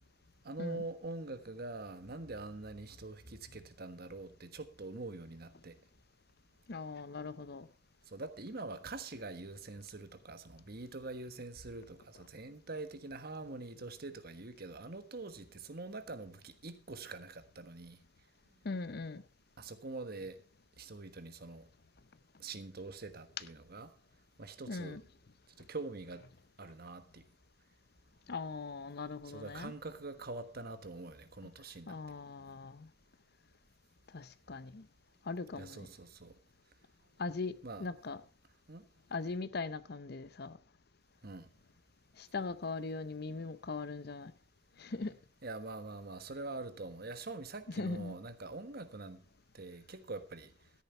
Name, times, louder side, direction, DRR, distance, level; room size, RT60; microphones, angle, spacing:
voice 1, 0.4-5.7 8.1-18.0 19.6-20.4 20.8-21.6 22.4-23.9 24.4-25.0 25.7-26.2 26.6-27.2 29.3-32.0 35.5-36.3 37.6-37.9 38.7-38.8 41.2-41.5 45.4-49.2 49.5-50.5, right 3 dB, 55° right, 1.3 m, -44 dB
voice 2, 6.7-7.7 18.6-19.2 24.7-25.0 28.3-29.7 31.9-32.9 34.1-34.8 35.3-35.9 37.2-38.2 39.1-40.5 42.2-44.3 44.8-45.2 47.7-48.1, left 3 dB, 55° left, 0.7 m, -40 dB
13.5 x 10.5 x 4.4 m
head